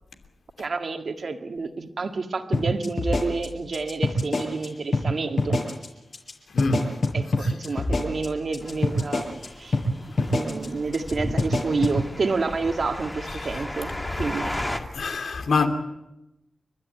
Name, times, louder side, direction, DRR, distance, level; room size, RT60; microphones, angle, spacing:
voice 1, 0.6-5.5 7.1-9.8 10.3-13.9 14.2-14.5, right 4 dB, 50° right, 1.8 m, -29 dB
sound 1, 2.5-4.7 4.9-5.1 5.4-5.9 6.1-6.3 6.6-9.5 9.7-9.9 10.2-10.7 10.9-11.1 11.4-12.0, left 2 dB, 55° left, 7.0 m, -25 dB
voice 2, 6.5-6.9 7.4-7.5 13.5-13.6 14.9-15.7, left 4 dB, 80° left, 2.8 m, -25 dB
sound 2, 8.6-14.8, left 1 dB, 15° left, 2.0 m, -35 dB
30.0 x 13.0 x 9.5 m
wide cardioid pair, 165°, 0 cm